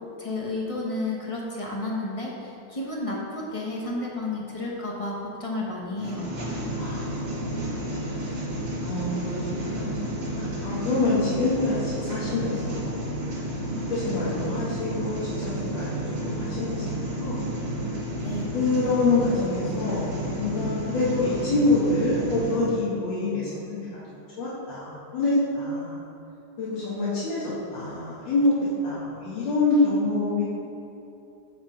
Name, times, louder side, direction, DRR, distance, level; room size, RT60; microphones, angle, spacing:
voice 1, 0.2-6.3 18.2-18.5, left 2 dB, 40° left, -3 dB, 0.4 m, -31 dB
sound 1, 6.0-22.5, right 1 dB, 55° right, 1.9 m, -31 dB
voice 2, 6.8-7.3 8.8-13.1 13.9-15.9 16.2-16.8 17.2-17.4 18.5-23.8 24.4-26.0 26.6-27.4 27.7-28.5 28.8-30.4, left 2 dB, 80° left, -9 dB, 2.0 m, -26 dB
7.8 x 4.3 x 5.1 m, 2.9 s
omnidirectional pair, 2.1 m